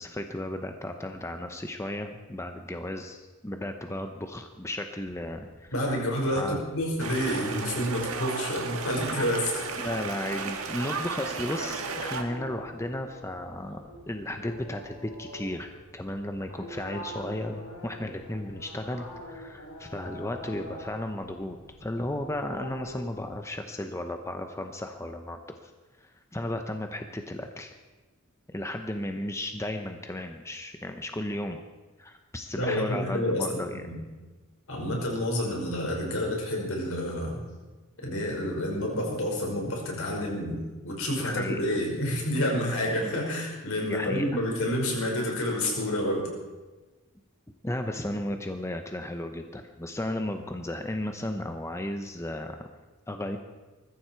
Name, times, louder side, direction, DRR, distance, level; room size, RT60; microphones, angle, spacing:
voice 1, 0.0-5.7 6.3-6.6 9.8-13.8 14.1-25.7 26.0-27.7 28.5-31.6 32.0-33.8 41.2-41.8 43.0-43.1 43.8-44.2 47.6-52.7 53.1-53.4, left 1 dB, 15° left, 5 dB, 0.8 m, -34 dB
sound 1, 5.0-23.2, left 1 dB, 90° left, 4.4 m, -46 dB
voice 2, 5.7-9.9 32.5-33.5 33.8-34.0 34.7-37.4 38.0-46.3, left 1 dB, 65° left, -1 dB, 5.3 m, -29 dB
sound 2, 7.0-12.2, right 5 dB, 75° right, 1.7 m, -34 dB
21.0 x 14.5 x 4.6 m, 1.2 s
head